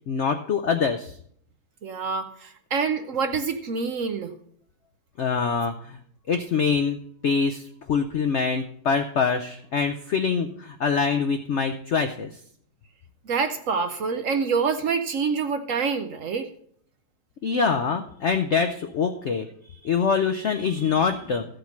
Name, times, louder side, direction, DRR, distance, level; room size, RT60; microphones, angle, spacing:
voice 1, 0.1-1.1 5.2-6.0 6.3-12.3 17.4-21.5, left 5 dB, 70° left, 7 dB, 0.6 m, -25 dB
voice 2, 1.8-4.3 13.2-16.5, right 5 dB, 60° right, 7 dB, 0.9 m, -26 dB
14.0 x 5.2 x 5.9 m, 0.63 s
omnidirectional pair, 1.9 m